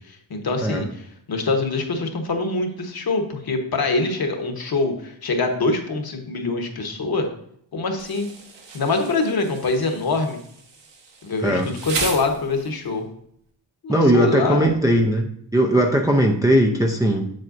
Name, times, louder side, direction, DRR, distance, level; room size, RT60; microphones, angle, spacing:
voice 1, 0.0-7.3 7.7-8.3 8.7-10.4 11.2-13.1 13.8-14.7, left 3 dB, 50° left, 4 dB, 1.2 m, -24 dB
Insect, 8.0-13.0, right 4 dB, 60° right, 1.4 m, -35 dB
voice 2, 13.9-17.3, right 1 dB, 10° right, 1 dB, 0.5 m, -19 dB
7.7 x 7.6 x 2.6 m, 0.68 s
wide cardioid pair, 150°, 48 cm